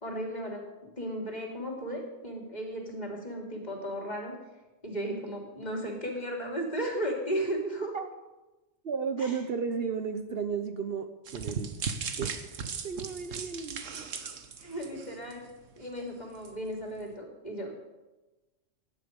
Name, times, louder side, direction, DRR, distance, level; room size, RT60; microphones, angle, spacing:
voice 1, 0.0-0.6 1.0-4.3 4.8-7.9 9.2-9.3 14.6-15.4 15.8-17.7, right 1 dB, 35° left, 0 dB, 3.1 m, -35 dB
voice 2, 8.8-11.9 12.2-12.4 12.8-13.8, right 6 dB, 55° right, 8 dB, 1.0 m, -33 dB
sound 1, 11.3-15.5 15.8-16.0 16.4-16.5, right 6 dB, 85° right, 1.5 m, -37 dB
17.0 x 11.5 x 5.3 m, 1.1 s
omnidirectional pair, 1.3 m